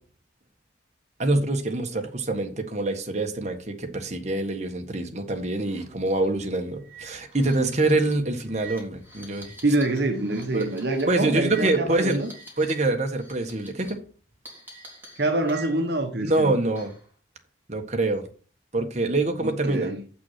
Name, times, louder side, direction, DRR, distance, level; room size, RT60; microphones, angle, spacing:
voice 1, 1.2-9.5 10.3-10.7 11.1-12.2 12.6-14.0 16.2-16.9 17.7-18.2 18.7-19.9, right 2 dB, 35° right, 1.4 m, -25 dB
sound 1, 5.6-5.8 6.1-6.3 6.8-12.9 13.1-13.9 14.5-16.0 16.3-17.1, right 3 dB, 10° right, 3.4 m, -46 dB
voice 2, 9.6-12.3 15.2-16.5 19.4-20.0, right 2 dB, 60° right, 1.1 m, -25 dB
7.8 x 6.0 x 5.8 m
head